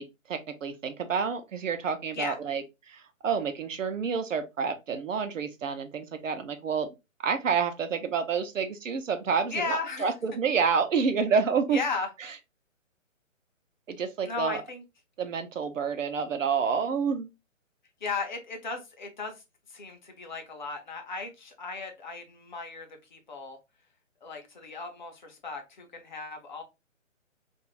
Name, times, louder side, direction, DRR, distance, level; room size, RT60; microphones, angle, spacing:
voice 1, 0.0-6.9 7.2-11.8 13.9-14.6 15.2-17.3, right 6 dB, 75° right, 0.7 m, -29 dB
voice 2, 9.5-10.1 11.7-12.1 14.3-14.8 18.0-19.4 19.7-23.6 24.2-26.6, left 4 dB, 35° left, 0.7 m, -36 dB
2.6 x 2.4 x 3.0 m
hypercardioid pair, 155°, 39 cm